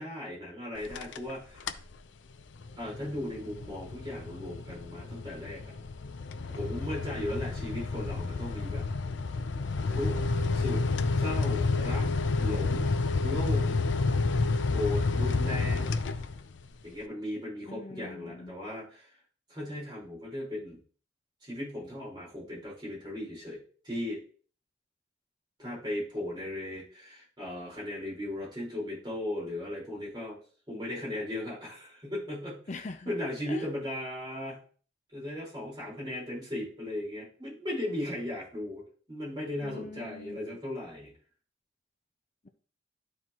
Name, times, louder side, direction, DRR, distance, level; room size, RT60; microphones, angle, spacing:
voice 1, 0.0-1.8 2.8-5.7 6.5-8.9 9.9-10.2 10.5-10.8 11.2-12.9 13.2-13.6 14.7-15.9 16.8-19.1 19.5-20.8 21.4-24.2 25.6-30.4 30.7-32.6 33.0-34.6 35.1-41.1, left 1 dB, 25° right, -6 dB, 4.5 m, -37 dB
sound 1, 0.8-1.3 1.6-1.9 2.4-16.7, left 3 dB, 80° left, 0.6 m, -30 dB
voice 2, 17.7-18.6 32.7-33.1 33.5-33.7 39.6-40.4, left 3 dB, 40° left, 7 dB, 0.5 m, -42 dB
12.5 x 4.6 x 3.0 m, 0.42 s
head